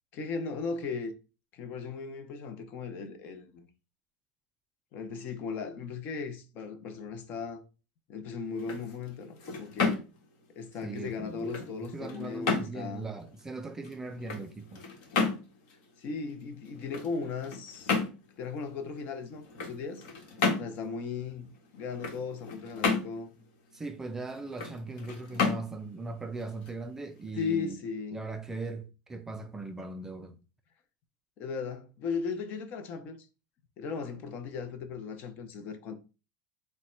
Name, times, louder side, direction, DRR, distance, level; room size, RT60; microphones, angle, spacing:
voice 1, 0.1-1.1 1.5-3.7 4.9-7.6 8.1-10.0 10.6-13.1 16.0-17.9 18.4-20.0 20.6-21.5 21.7-23.4 27.4-28.2 31.4-33.3 33.8-36.0, left 5 dB, 45° left, 0.6 m, -37 dB
sound 1, 8.4-27.3, left 4 dB, 65° left, 1.3 m, -34 dB
voice 2, 10.8-14.8 23.7-27.8 28.1-30.4, right 3 dB, 10° right, 0.3 m, -39 dB
3.5 x 2.1 x 4.3 m
supercardioid pair, 145°, 4 cm